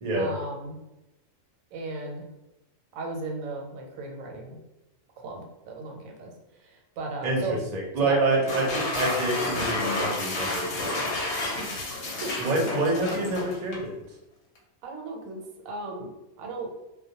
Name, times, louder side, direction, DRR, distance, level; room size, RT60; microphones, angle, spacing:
voice 1, 0.1-0.8 1.7-2.3 2.9-4.6 5.2-7.6 8.0-8.2 11.6-11.9 12.2-12.7 14.8-15.4 15.6-16.1 16.4-16.7, right 3 dB, 90° right, 1 dB, 1.0 m, -36 dB
voice 2, 7.2-11.2 12.4-13.9, right 2 dB, 50° right, -1 dB, 0.5 m, -27 dB
sound 1, 8.3-13.9, left 2 dB, 60° left, 0.7 m, -30 dB
2.2 x 2.0 x 2.7 m, 0.95 s
omnidirectional pair, 1.4 m